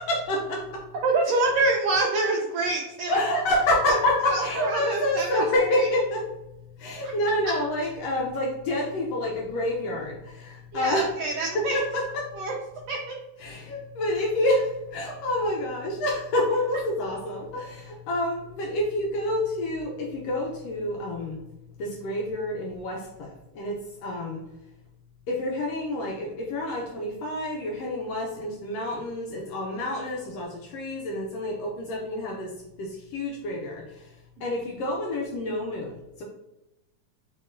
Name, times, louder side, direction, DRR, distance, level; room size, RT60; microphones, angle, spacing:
voice 1, 0.1-0.8 3.1-6.2 6.8-11.1 11.5-12.2 13.4-21.4 21.8-24.4 25.3-32.5 32.8-35.9 36.2-36.3, left 1 dB, 75° left, -1 dB, 1.5 m, -28 dB
voice 2, 1.0-3.2 3.9-4.0 4.2-5.9 10.7-11.8 12.4-12.5 12.9-13.2, right 3 dB, 85° right, 0 dB, 1.4 m, -26 dB
4.4 x 3.8 x 2.5 m, 0.92 s
omnidirectional pair, 3.4 m